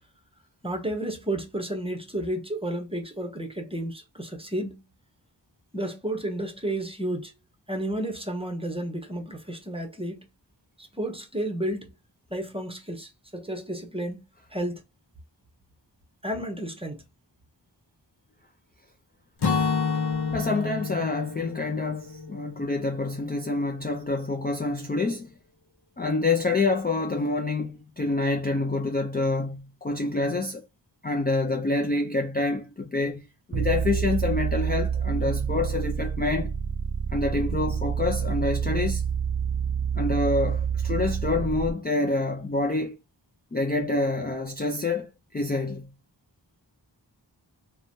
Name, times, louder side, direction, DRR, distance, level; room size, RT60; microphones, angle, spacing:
voice 1, 0.6-4.8 5.7-7.3 7.7-10.3 10.8-11.9 12.3-14.8 16.2-17.0, right 1 dB, 15° right, 0.8 m, -32 dB
Acoustic guitar / Strum, 19.4-23.4, left 5 dB, 60° left, 0.7 m, -29 dB
voice 2, 20.3-25.3 26.0-30.6 31.0-36.5 37.1-39.0 39.9-42.9 43.5-45.9, left 3 dB, 20° left, 0.4 m, -27 dB
sound 1, 33.5-41.7, right 7 dB, 40° right, 0.4 m, -28 dB
3.0 x 2.2 x 2.7 m
wide cardioid pair, 40°, 45 cm